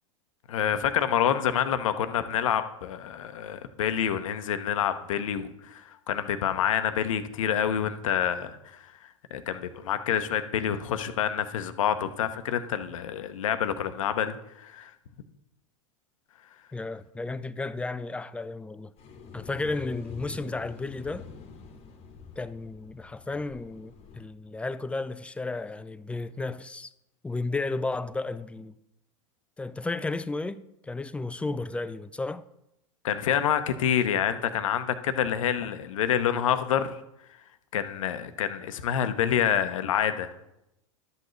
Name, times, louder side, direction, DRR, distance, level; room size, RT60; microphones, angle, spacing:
voice 1, 0.5-8.9 9.3-14.9 33.0-37.0 37.7-40.3, left 9 dB, 75° left, 0.8 m, -27 dB
voice 2, 16.7-18.9 19.3-21.3 22.4-26.9 27.2-28.7 29.6-32.4, left 3 dB, 5° left, 0.4 m, -33 dB
sound 1, 19.0-24.2, left 4 dB, 35° left, 1.2 m, -46 dB
12.0 x 8.0 x 3.2 m
hypercardioid pair, 95°, 17 cm